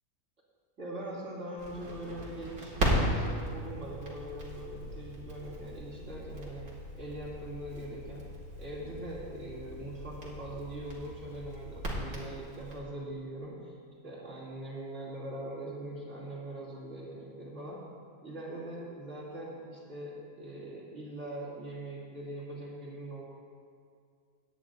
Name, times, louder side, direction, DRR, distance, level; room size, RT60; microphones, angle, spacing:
voice 1, 0.8-6.7 6.9-8.2 8.6-13.7 14.0-17.8 18.2-23.2, right 1 dB, 45° right, -7 dB, 2.7 m, -42 dB
Crackle, 1.6-12.8, equal, 75° right, 2.5 m, -37 dB
Keyboard (musical), 3.0-5.2, left 1 dB, 20° left, 2.2 m, -46 dB
18.0 x 9.5 x 2.5 m, 2.2 s
omnidirectional pair, 1.7 m